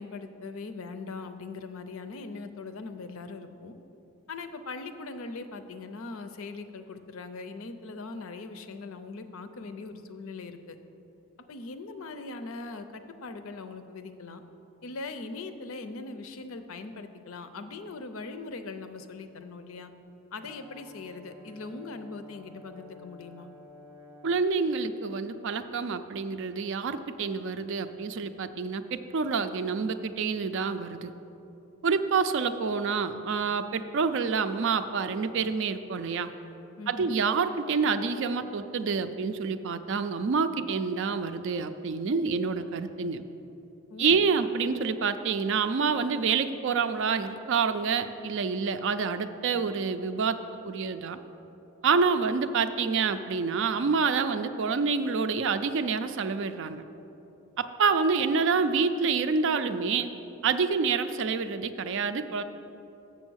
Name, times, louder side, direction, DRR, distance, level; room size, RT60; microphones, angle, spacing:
voice 1, 0.0-3.7 4.3-10.8 11.5-14.4 14.8-19.9 20.3-23.5 36.8-37.2 43.9-44.3, left 3 dB, 65° left, 9 dB, 0.5 m, -40 dB
Brass instrument, 20.4-24.6, left 1 dB, 10° right, 0.7 m, -51 dB
voice 2, 24.2-31.1 31.8-36.3 36.9-43.2 44.0-50.4 50.6-51.2 51.8-56.8 57.6-60.1 60.4-62.4, right 5 dB, 55° right, 10 dB, 0.4 m, -27 dB
7.3 x 6.9 x 6.3 m, 3.0 s
head